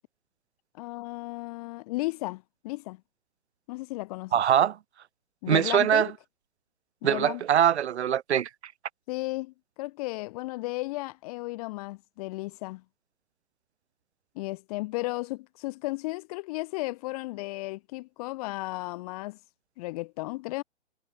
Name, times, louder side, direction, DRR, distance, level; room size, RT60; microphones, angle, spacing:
voice 1, 0.7-3.0 3.7-4.3 5.4-6.1 7.0-7.4 9.1-12.8 14.3-19.4 19.8-20.6, left 22 dB, 35° left, 1.2 m, -34 dB
voice 2, 4.3-4.8 5.5-6.1 7.0-8.5, right 10 dB, 70° right, 0.7 m, -22 dB
hypercardioid pair, 130°, 34 cm